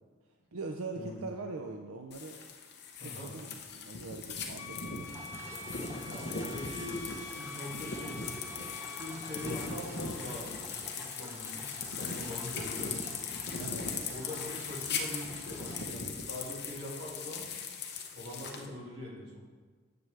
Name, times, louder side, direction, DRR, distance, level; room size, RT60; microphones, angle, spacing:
voice 1, 0.5-2.4 3.0-5.1 13.6-13.9, right 3 dB, 90° right, 3 dB, 0.6 m, -42 dB
sound 1, 2.1-18.7, left 5 dB, 50° left, 0.8 m, -39 dB
voice 2, 3.0-3.3 5.8-7.1 7.4-8.2 9.0-10.5 11.0-13.0 14.1-17.4 18.1-19.4, left 1 dB, 50° right, -5 dB, 2.4 m, -42 dB
sound 2, 4.6-9.7, left 4 dB, 75° left, 1.7 m, -46 dB
sound 3, 5.0-15.8, right 1 dB, 10° right, 0.7 m, -50 dB
9.5 x 6.9 x 3.3 m, 1.4 s
head